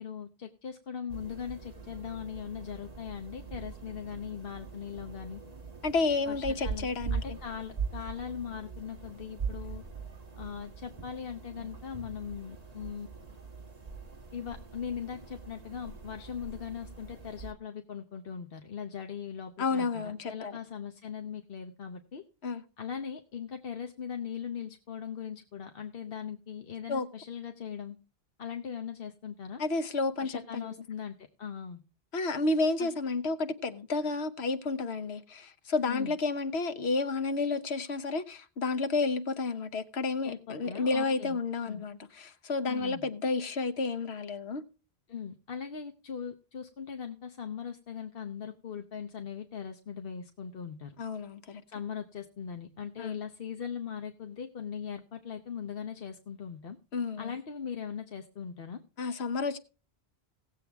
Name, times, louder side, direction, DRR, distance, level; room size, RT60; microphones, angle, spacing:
voice 1, 0.0-5.4 6.3-9.8 10.4-13.1 14.3-22.2 22.8-28.0 28.4-29.6 30.2-31.8 32.8-32.9 35.9-36.1 40.2-41.4 41.6-41.8 42.7-43.1 45.1-51.0 51.7-56.8 57.2-58.8, left 7 dB, 65° left, 1.1 m, -40 dB
sound 1, 1.1-17.5, right 5 dB, 40° right, 1.3 m, -42 dB
voice 2, 5.8-7.4 19.6-20.6 22.4-22.6 26.9-27.1 29.6-30.7 32.1-44.6 51.0-51.6 53.0-53.2 56.9-57.3 59.0-59.6, left 3 dB, 80° left, 1.2 m, -31 dB
18.0 x 7.6 x 3.4 m
omnidirectional pair, 1.1 m